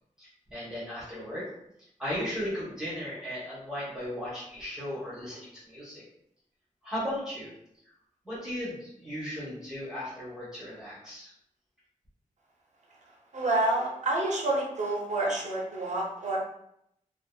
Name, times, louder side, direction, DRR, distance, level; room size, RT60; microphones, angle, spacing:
voice 1, 0.2-1.5 2.0-6.0 6.8-7.5 8.2-11.3, equal, 5° right, -9 dB, 0.9 m, -36 dB
voice 2, 13.3-16.4, right 2 dB, 60° right, -2 dB, 0.7 m, -28 dB
2.7 x 2.3 x 2.3 m, 0.76 s
wide cardioid pair, 135°, 14 cm